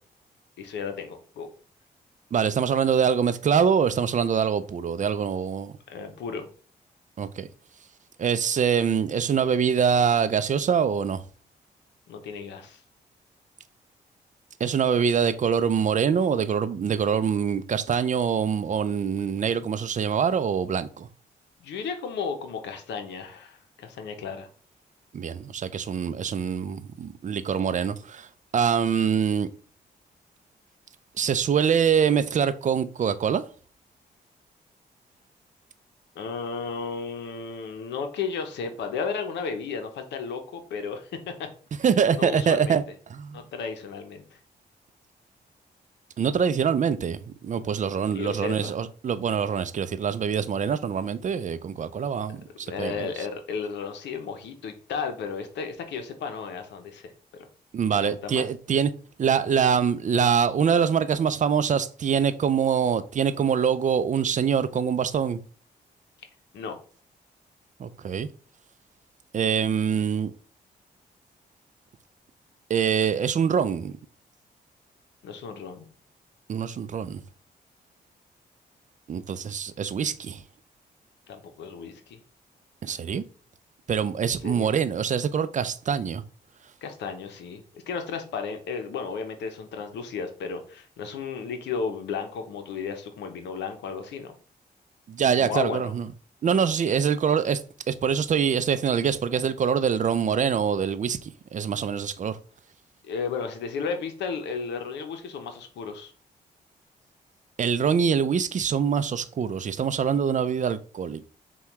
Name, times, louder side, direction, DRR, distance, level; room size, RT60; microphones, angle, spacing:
voice 1, 0.6-1.5 5.9-6.5 12.1-12.8 21.6-24.5 36.1-41.5 42.1-42.8 43.3-44.4 48.1-48.8 52.7-57.5 58.0-58.5 66.5-66.8 75.2-75.8 81.3-82.2 84.4-84.7 86.8-94.3 95.4-95.9 103.0-106.1, left 5 dB, 90° left, 0.7 m, -34 dB
voice 2, 2.3-5.8 7.2-7.5 8.2-11.2 14.6-21.1 25.1-28.3 28.5-29.5 31.2-33.4 41.8-42.8 43.1-43.4 46.2-53.1 57.7-58.9 59.2-65.4 67.8-68.3 69.3-70.3 72.7-74.0 76.5-77.2 79.1-80.4 82.8-83.2 83.9-86.2 95.1-96.1 96.4-97.6 97.9-102.4 107.6-111.3, right 7 dB, 45° right, 0.4 m, -24 dB
5.6 x 2.3 x 3.0 m
cardioid pair, 65°, 18 cm